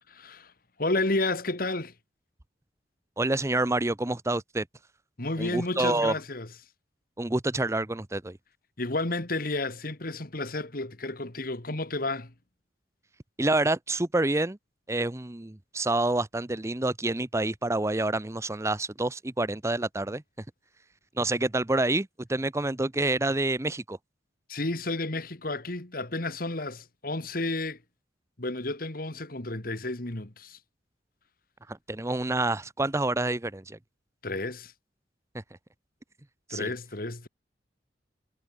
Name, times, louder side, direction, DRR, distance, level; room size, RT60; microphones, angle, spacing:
voice 1, 0.1-0.5 0.8-1.9 5.2-6.5 8.8-12.3 24.5-27.8 28.4-30.6 34.2-34.7 36.5-37.3, left 2 dB, 50° left, 2.2 m, -31 dB
voice 2, 3.2-4.6 5.4-6.1 7.2-8.4 13.4-14.6 14.9-20.2 21.2-24.0 31.7-33.8 36.5-36.7, right 2 dB, 15° right, 0.7 m, -27 dB
head